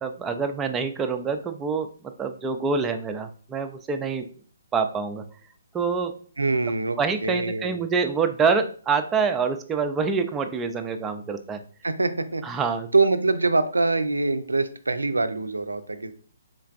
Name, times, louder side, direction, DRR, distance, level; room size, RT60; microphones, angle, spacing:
voice 1, 0.0-4.3 4.7-5.2 5.7-6.2 7.0-11.6 12.4-12.9, right 5 dB, 15° right, 6 dB, 0.4 m, -26 dB
voice 2, 6.4-7.8 11.8-12.4 12.9-16.1, right 3 dB, 80° right, 10 dB, 0.4 m, -24 dB
3.8 x 3.2 x 2.4 m, 0.43 s
figure-of-eight pair, 135°, 0 cm